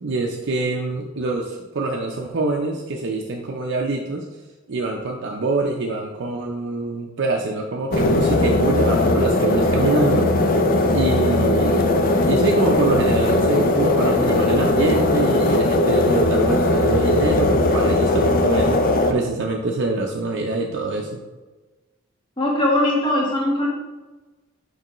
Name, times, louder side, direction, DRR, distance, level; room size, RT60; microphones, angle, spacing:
voice 1, 0.0-4.2 4.7-10.3 10.9-11.9 12.3-18.8 19.1-21.2, right 2 dB, 60° right, 0 dB, 0.6 m, -24 dB
sound 1, 7.9-19.1, left 2 dB, 45° left, 0.5 m, -19 dB
voice 2, 22.4-23.7, left 1 dB, 20° left, -3 dB, 1.3 m, -20 dB
6.6 x 4.7 x 3.0 m, 1.2 s
head